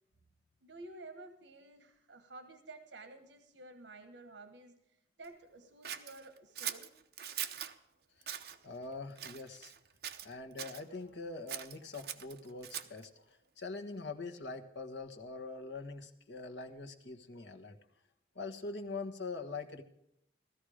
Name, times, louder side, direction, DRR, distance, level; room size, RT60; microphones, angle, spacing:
voice 1, 0.6-4.8 5.2-6.9, right 2 dB, 80° right, 8 dB, 1.3 m, -52 dB
Scissors, 5.8-7.7 8.2-8.6 9.2-9.8 10.0-10.8 11.5-13.0, right 10 dB, 60° right, 0.9 m, -41 dB
voice 2, 8.6-9.7 10.2-17.8 18.3-19.8, left 3 dB, 80° left, 5 dB, 1.5 m, -43 dB
17.0 x 13.5 x 5.0 m, 0.76 s
head